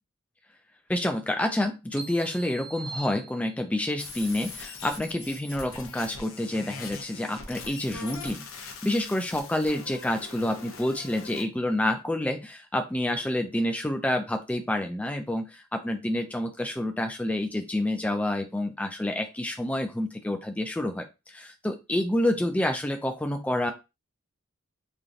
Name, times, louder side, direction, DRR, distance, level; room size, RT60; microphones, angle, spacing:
voice 1, 0.9-23.7, left 1 dB, 5° left, 4 dB, 0.3 m, -28 dB
sound 1, 2.0-3.9, right 4 dB, 50° right, 0.5 m, -42 dB
sound 2, 4.0-11.4, left 4 dB, 80° left, 0.6 m, -42 dB
3.1 x 2.6 x 2.5 m, 0.26 s
head